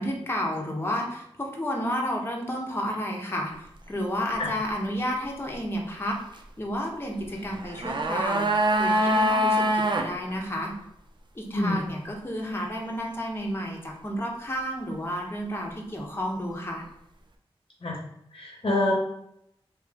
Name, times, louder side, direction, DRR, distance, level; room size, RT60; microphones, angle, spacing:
voice 1, 0.0-6.2 6.6-10.7 11.3-16.8, equal, 25° left, -1 dB, 1.0 m, -31 dB
sound 1, 7.5-10.1 10.4-10.5, equal, 45° right, 0.5 m, -24 dB
voice 2, 18.3-18.9, left 2 dB, 55° left, -3 dB, 0.9 m, -26 dB
3.0 x 3.0 x 3.6 m, 0.77 s
cardioid pair, 40°, 10 cm